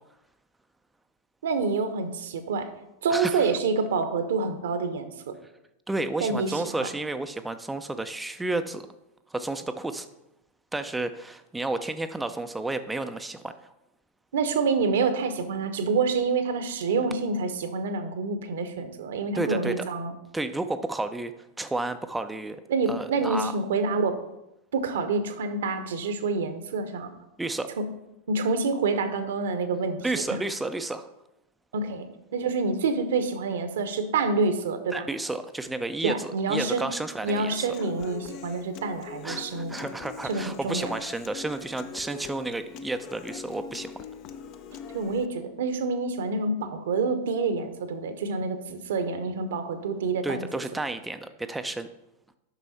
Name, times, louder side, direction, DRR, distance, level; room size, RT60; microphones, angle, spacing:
voice 1, 1.4-2.7 3.0-5.4 6.2-6.6 14.3-20.1 22.7-24.2 24.7-27.1 28.3-30.3 31.7-35.1 36.0-36.9 37.2-39.8 40.2-40.9 44.9-50.6, right 4 dB, 60° right, 9 dB, 0.9 m, -27 dB
voice 2, 3.1-3.5 5.9-8.9 9.3-10.1 10.7-13.5 19.3-19.9 20.3-21.3 21.6-22.6 22.9-23.5 27.4-27.7 30.0-31.1 34.9-37.7 39.2-43.9 50.2-51.9, right 2 dB, 5° right, 9 dB, 0.5 m, -31 dB
Human voice / Acoustic guitar, 37.3-45.3, left 7 dB, 40° left, 0.5 m, -42 dB
9.1 x 6.1 x 4.2 m, 0.87 s
figure-of-eight pair, 90°, 0 cm